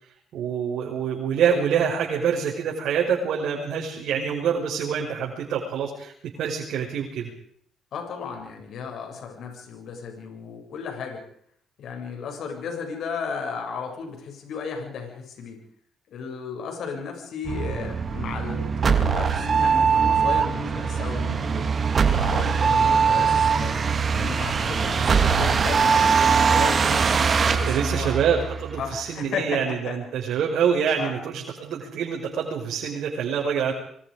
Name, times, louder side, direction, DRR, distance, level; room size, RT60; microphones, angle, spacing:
voice 1, 0.3-6.1 6.4-7.3 27.7-33.7, right 7 dB, 75° right, -1 dB, 5.7 m, -26 dB
voice 2, 7.9-11.2 11.8-15.6 16.1-21.7 22.1-23.8 24.1-27.1 27.4-28.1 28.8-30.3 31.0-31.1, left 5 dB, 70° left, 3 dB, 7.3 m, -34 dB
sound 1, 17.4-28.9, right 6 dB, 45° right, 2.7 m, -22 dB
27.0 x 24.0 x 5.2 m, 0.65 s
cardioid pair, 90°, 0 cm